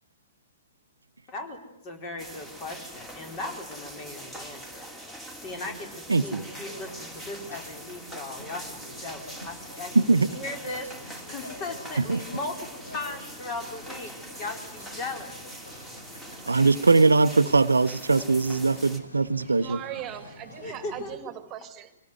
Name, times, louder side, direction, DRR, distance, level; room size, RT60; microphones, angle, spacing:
voice 1, 1.3-4.9 5.3-10.0 10.3-15.3 20.6-21.2, left 2 dB, 30° left, 4 dB, 4.4 m, -38 dB
sound 1, 2.2-19.0, right 1 dB, 10° left, 2.8 m, -43 dB
voice 2, 6.1-6.4 9.9-10.3 12.1-12.2 16.5-19.8, right 3 dB, 75° right, 12 dB, 0.8 m, -21 dB
sound 2, 6.5-21.2, left 1 dB, 75° left, 4.4 m, -47 dB
voice 3, 19.4-22.0, right 10 dB, 25° right, 11 dB, 2.0 m, -39 dB
24.0 x 18.0 x 9.6 m, 0.86 s
figure-of-eight pair, 115°, 0 cm